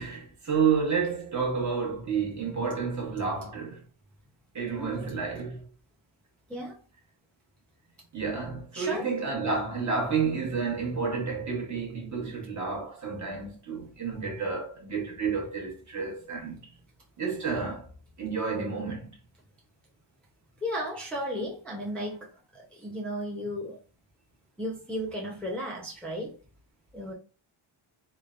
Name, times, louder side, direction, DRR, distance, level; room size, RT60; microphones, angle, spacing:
voice 1, 0.0-3.8 4.5-5.6 8.1-16.6 17.2-17.9 18.2-19.1, right 5 dB, 35° right, 0.9 m, -30 dB
voice 2, 8.7-9.1 20.6-22.3 22.5-23.8 24.6-26.3 26.9-27.1, equal, ahead, 0.5 m, -34 dB
3.2 x 2.1 x 2.4 m
cardioid pair, 105°, 50 cm